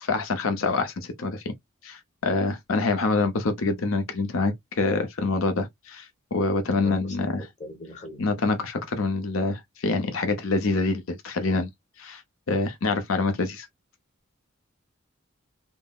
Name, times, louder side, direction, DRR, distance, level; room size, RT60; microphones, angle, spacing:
voice 1, 0.0-1.5 1.8-7.5 8.2-11.7 12.0-12.2 12.5-13.7, left 3 dB, 90° left, 0.7 m, -26 dB
voice 2, 6.8-8.2, left 1 dB, 35° left, 1.2 m, -41 dB
3.8 x 2.0 x 2.3 m
head